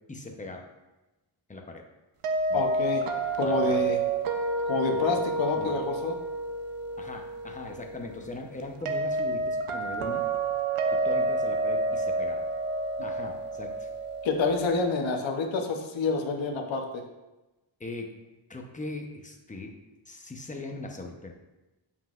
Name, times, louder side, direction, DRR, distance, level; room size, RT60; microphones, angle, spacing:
voice 1, 0.1-0.7 1.5-1.8 2.5-2.7 3.4-3.8 4.9-5.3 5.6-5.7 7.0-10.3 10.9-12.5 13.0-13.9 17.8-18.2 18.5-19.8 20.1-21.3, left 2 dB, 15° left, 2 dB, 0.8 m, -40 dB
sound 1, 2.2-15.1, right 3 dB, 90° right, 0.8 m, -30 dB
voice 2, 2.5-3.0 3.4-4.0 4.7-6.2 14.2-17.0, left 4 dB, 65° left, 2 dB, 0.9 m, -28 dB
7.9 x 5.6 x 2.5 m, 1.0 s
cardioid pair, 105°, 49 cm